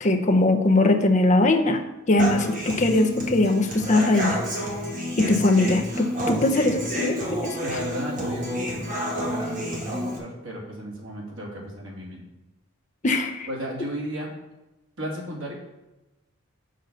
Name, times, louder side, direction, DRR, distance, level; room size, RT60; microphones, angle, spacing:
voice 1, 0.0-4.4 5.2-7.6 13.0-13.5, left 2 dB, 35° left, 5 dB, 0.7 m, -21 dB
Human voice / Acoustic guitar, 2.2-10.2, equal, 40° right, 1.8 m, -29 dB
voice 2, 7.6-8.7 9.1-12.2 13.5-14.3 15.0-15.5, equal, 80° right, -2 dB, 2.4 m, -34 dB
6.5 x 5.4 x 6.7 m, 1.0 s
head